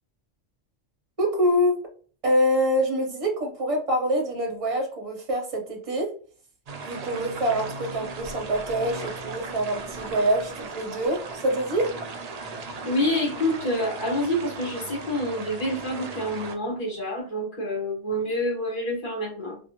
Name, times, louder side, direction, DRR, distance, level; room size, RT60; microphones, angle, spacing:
voice 1, 1.2-1.8 2.2-6.1 6.8-11.9, equal, 30° right, 1 dB, 0.8 m, -25 dB
sound 1, 6.7-16.5, right 3 dB, 70° right, 0.3 m, -37 dB
voice 2, 12.8-19.6, left 1 dB, 45° left, -4 dB, 1.5 m, -27 dB
2.5 x 2.2 x 2.8 m, 0.42 s
omnidirectional pair, 1.2 m